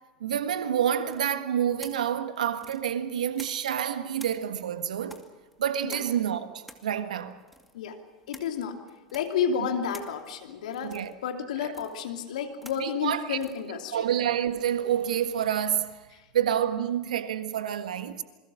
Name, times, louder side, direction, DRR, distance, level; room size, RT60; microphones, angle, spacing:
voice 1, 0.2-5.3 5.6-7.4 9.6-9.7 10.8-11.1 11.6-11.7 12.8-13.4 13.9-16.1 16.3-18.2, right 9 dB, 75° right, 1.6 m, -28 dB
sound 1, 1.0-3.8 4.1-15.1, equal, ahead, 2.4 m, -51 dB
voice 2, 8.3-8.8 9.1-14.0 16.2-16.3, left 7 dB, 70° left, 2.7 m, -31 dB
27.5 x 21.5 x 6.3 m
hypercardioid pair, 85°, 4 cm